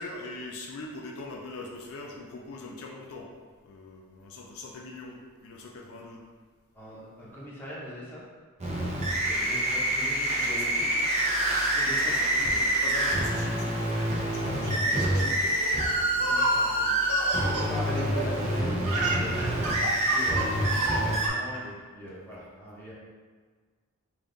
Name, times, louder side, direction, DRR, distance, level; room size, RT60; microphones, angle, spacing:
voice 1, 0.0-3.3 3.6-6.2 9.2-9.9 10.3-10.9 11.8-15.5, left 2 dB, 70° left, 0 dB, 0.4 m, -42 dB
voice 2, 6.7-8.2 9.2-10.8 11.7-12.2 14.4-19.7 20.1-22.9, equal, 10° left, -7 dB, 0.9 m, -40 dB
sound 1, 8.6-21.3, right 1 dB, 30° right, 0.7 m, -26 dB
Laughter, 14.7-18.5 18.7-21.6, right 2 dB, 75° right, 0.6 m, -33 dB
3.5 x 2.5 x 3.8 m, 1.5 s
head